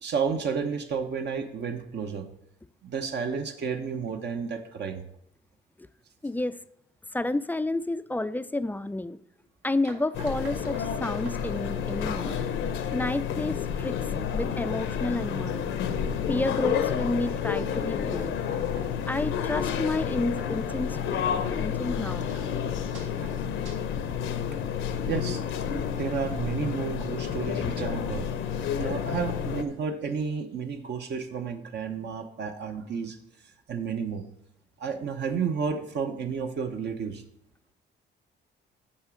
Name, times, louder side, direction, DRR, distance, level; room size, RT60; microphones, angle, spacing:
voice 1, 0.0-2.3 2.8-5.0 25.1-25.4 25.8-28.3 28.8-33.2 33.7-34.3 34.8-37.2, right 6 dB, 60° right, 5 dB, 0.9 m, -31 dB
voice 2, 6.2-6.6 7.1-9.2 9.6-12.4 12.9-14.0 14.3-15.8 16.3-18.4 19.1-21.0 21.3-22.3, left 2 dB, 10° left, 13 dB, 0.3 m, -30 dB
sound 1, 9.8-13.3 13.7-14.1 14.5-15.0 15.5-16.0 16.4-16.8 17.3-17.7 18.2-23.7, right 3 dB, 80° right, 2.2 m, -50 dB
sound 2, 10.1-29.6, left 8 dB, 80° left, 0.8 m, -30 dB
7.2 x 4.9 x 6.2 m, 0.76 s
cardioid pair, 90°, 20 cm